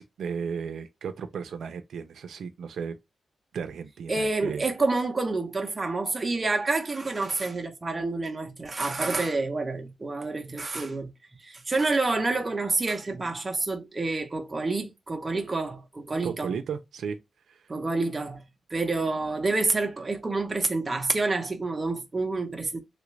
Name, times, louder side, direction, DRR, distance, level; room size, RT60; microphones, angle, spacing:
voice 1, 0.0-3.0 3.5-4.7 16.2-17.2 17.5-17.6, right 6 dB, 90° right, 0.5 m, -34 dB
voice 2, 4.1-11.1 11.4-16.5 17.7-18.4 18.7-22.8, right 3 dB, 25° right, 0.7 m, -28 dB
3.3 x 2.4 x 3.1 m
wide cardioid pair, 155°, 0 cm